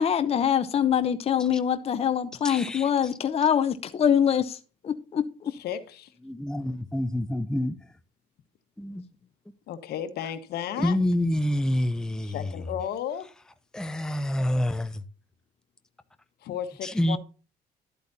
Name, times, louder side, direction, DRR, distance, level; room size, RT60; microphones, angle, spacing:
voice 1, 0.0-4.6 4.8-5.5, left 8 dB, 35° left, 0.8 m, -24 dB
voice 2, 2.4-2.9 6.2-7.8 8.8-9.0 10.8-12.6 13.7-15.0 16.8-17.2, left 1 dB, 5° left, 0.6 m, -27 dB
voice 3, 5.5-6.1 9.7-11.0 12.3-13.3 16.4-17.2, left 10 dB, 70° left, 1.4 m, -33 dB
11.5 x 8.4 x 2.7 m
cardioid pair, 110°, 17 cm